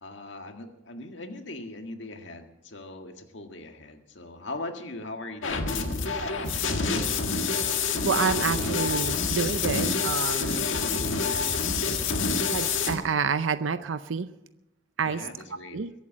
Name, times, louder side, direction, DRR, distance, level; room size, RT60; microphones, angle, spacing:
voice 1, 0.0-5.9 10.7-11.0 15.0-15.8, left 2 dB, 65° left, 5 dB, 1.8 m, -40 dB
sound 1, 5.4-12.9, left 5 dB, 85° left, 1.7 m, -27 dB
voice 2, 8.0-10.7 12.5-14.3 15.0-15.3 15.7-15.9, right 5 dB, 80° right, 11 dB, 0.6 m, -28 dB
22.5 x 8.3 x 7.3 m, 0.91 s
head